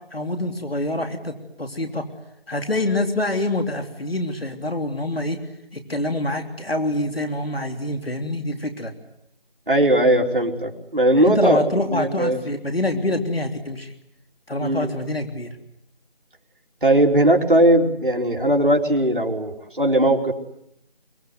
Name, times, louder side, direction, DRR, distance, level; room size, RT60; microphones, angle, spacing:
voice 1, 0.1-2.0 2.5-5.4 5.7-8.9 11.2-13.9 14.5-15.6, left 1 dB, 80° left, 6 dB, 3.4 m, -26 dB
voice 2, 9.7-12.4 14.6-14.9 16.8-20.3, right 1 dB, 60° right, 1 dB, 3.5 m, -19 dB
25.0 x 23.5 x 9.5 m, 0.74 s
figure-of-eight pair, 175°, 29 cm